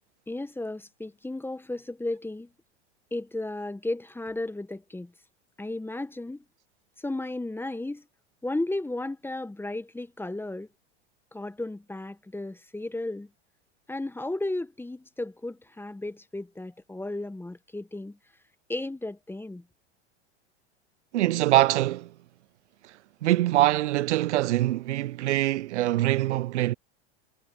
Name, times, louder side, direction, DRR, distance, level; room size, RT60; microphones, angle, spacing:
voice 1, 0.3-2.5 3.1-5.1 5.6-6.4 7.0-8.0 8.4-10.7 11.3-13.3 13.9-18.2 18.7-19.6, left 2 dB, 5° left, 1.3 m, -34 dB
voice 2, 21.1-22.1 22.8-22.9 23.2-26.7, right 15 dB, 85° right, 0.5 m, -24 dB
hypercardioid pair, 95°, 34 cm